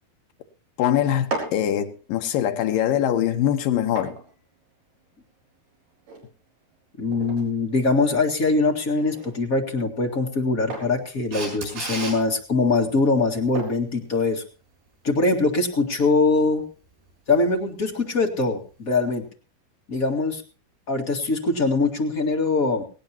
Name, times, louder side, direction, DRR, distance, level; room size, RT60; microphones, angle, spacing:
voice 1, 0.8-4.2, left 10 dB, 70° left, 2.7 m, -23 dB
sound 1, 1.3-14.9, right 3 dB, 60° right, 6.0 m, -41 dB
voice 2, 7.0-14.4 15.0-16.6 17.3-19.2 19.9-20.4 20.9-22.8, left 3 dB, 30° left, 1.6 m, -22 dB
Camera, 11.3-12.2 18.9-19.0, right 3 dB, 85° right, 8.6 m, -31 dB
18.5 x 17.5 x 2.9 m
omnidirectional pair, 4.3 m